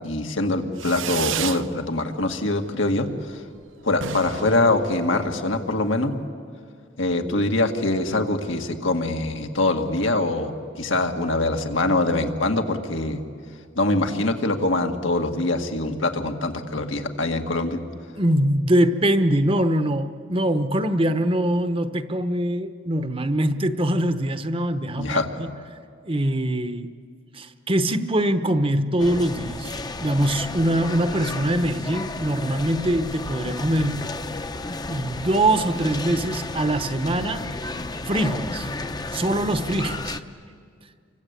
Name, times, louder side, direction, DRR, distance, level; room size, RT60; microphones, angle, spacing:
voice 1, 0.0-3.1 3.8-6.1 7.0-10.5 10.8-13.2 13.8-17.8 25.0-25.3, left 2 dB, 80° left, 4 dB, 2.1 m, -23 dB
Fireworks, 0.7-1.7 2.0-2.6 2.9-3.0 3.2-3.3 3.6-3.7 3.9-5.6, right 9 dB, 80° right, 0.7 m, -32 dB
voice 2, 18.2-25.5 26.0-26.9 27.3-34.1 34.9-37.5 38.1-38.7 39.1-40.2, right 1 dB, 30° right, 10 dB, 1.0 m, -23 dB
sound 1, 29.0-40.2, left 2 dB, 20° left, 0.8 m, -32 dB
29.0 x 24.5 x 8.4 m, 2.2 s
head